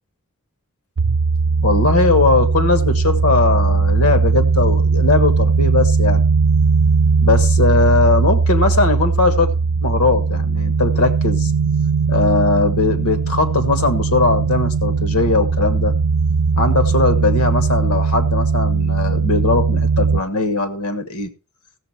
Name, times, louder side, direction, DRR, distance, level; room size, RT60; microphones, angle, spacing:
sound 1, 1.0-20.2, right 4 dB, 60° right, 0.5 m, -18 dB
voice 1, 1.6-6.2 7.2-9.5 9.8-11.5 12.1-15.9 16.6-21.3, left 3 dB, 90° left, 1.4 m, -19 dB
15.0 x 7.3 x 4.2 m
head